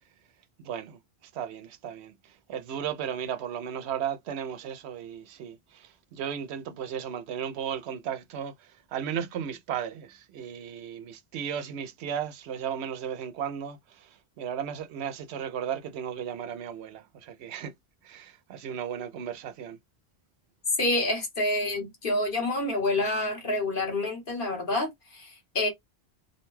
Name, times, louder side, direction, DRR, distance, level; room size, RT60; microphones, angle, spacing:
voice 1, 0.6-17.7 18.0-19.8, right 8 dB, 85° right, 0.8 m, -35 dB
voice 2, 20.8-25.7, left 2 dB, 55° left, 1.3 m, -28 dB
2.6 x 2.2 x 3.1 m
omnidirectional pair, 1.1 m